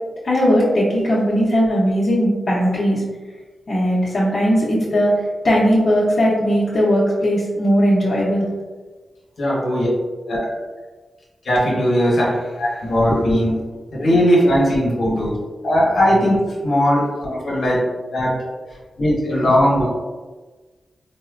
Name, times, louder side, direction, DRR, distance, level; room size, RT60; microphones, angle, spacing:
voice 1, 0.2-3.0 3.7-8.5 13.1-13.2, equal, 40° left, -8 dB, 0.7 m, -18 dB
voice 2, 9.4-9.9 10.2-10.5 11.4-13.5 13.9-15.4 15.6-18.4 19.0-19.9, equal, 65° left, -5 dB, 1.0 m, -18 dB
4.1 x 2.1 x 2.4 m, 1.3 s
wide cardioid pair, 120°, 0 cm